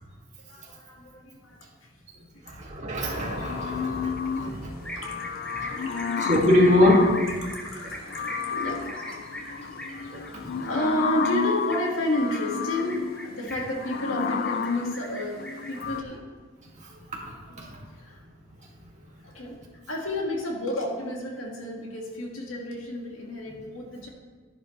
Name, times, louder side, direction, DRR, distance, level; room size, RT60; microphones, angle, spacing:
voice 1, 0.5-1.9 2.1-2.4 3.7-6.1 7.4-16.2 17.6-17.7 18.0-18.2 19.2-24.1, left 1 dB, 85° left, -1 dB, 2.1 m, -32 dB
voice 2, 2.4-5.0 5.6-5.7 6.2-7.3 10.1-10.2 16.8-17.7, left 1 dB, 35° right, -3 dB, 2.4 m, -24 dB
sound 1, 3.0-4.6 4.9-7.4 7.9-16.0, left 6 dB, 45° left, 0.4 m, -31 dB
sound 2, 4.8-15.8, equal, 5° left, 1.1 m, -40 dB
12.5 x 10.5 x 3.3 m, 1.4 s
head